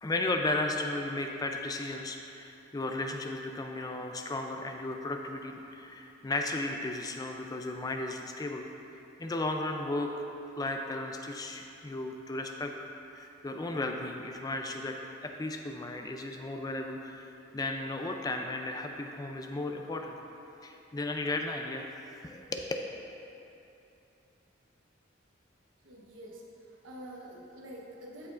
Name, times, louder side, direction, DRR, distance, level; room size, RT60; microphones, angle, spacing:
voice 1, 0.0-8.7 9.2-10.1 10.6-12.7 13.1-17.3 17.5-20.2 20.6-21.9 22.2-22.8, left 2 dB, 20° left, 3 dB, 0.3 m, -35 dB
voice 2, 25.8-28.3, equal, 75° right, -3 dB, 1.1 m, -47 dB
14.0 x 4.6 x 2.5 m, 2.9 s
head